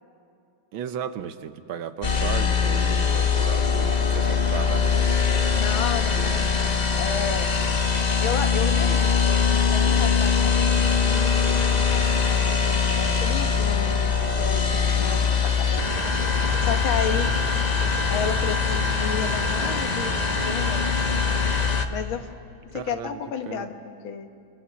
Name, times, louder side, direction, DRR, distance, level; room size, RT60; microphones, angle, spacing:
voice 1, 0.7-5.5 6.1-6.4 14.9-15.2 22.7-23.2 23.5-23.7, right 8 dB, 85° right, 10 dB, 1.8 m, -35 dB
sound 1, 2.0-21.9, left 6 dB, 30° left, 0.8 m, -22 dB
voice 2, 5.5-7.5 8.2-11.6 11.9-16.0 16.6-17.3 18.1-21.2 21.9-22.3 22.7-23.8 24.0-24.3, left 7 dB, 85° left, 7 dB, 2.1 m, -32 dB
27.0 x 22.0 x 8.5 m, 2.5 s
omnidirectional pair, 2.2 m